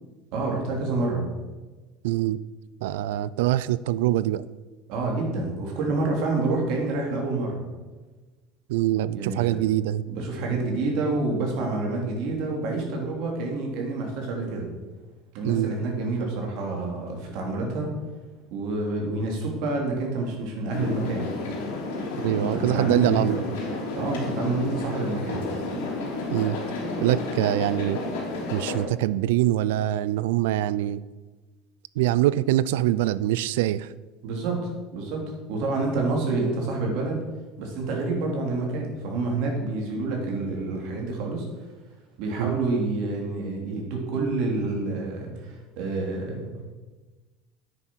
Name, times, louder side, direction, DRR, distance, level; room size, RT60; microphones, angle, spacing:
voice 1, 0.3-1.3 4.9-7.6 9.1-9.6 10.1-14.7 15.3-17.9 18.5-21.2 22.3-23.2 24.0-25.4 34.2-35.2 35.5-37.2 37.6-41.7 42.2-46.5, right 3 dB, 70° right, 0 dB, 3.2 m, -28 dB
voice 2, 2.0-2.4 2.8-4.5 8.7-10.0 15.4-15.7 22.2-23.4 26.3-26.6 27.0-28.0 28.5-31.0 32.0-33.9 42.4-42.6, right 14 dB, 85° right, 18 dB, 0.4 m, -24 dB
sound 1, 20.7-28.8, left 2 dB, 85° left, 3.0 m, -31 dB
9.2 x 6.6 x 6.3 m, 1.2 s
supercardioid pair, 105°, 0 cm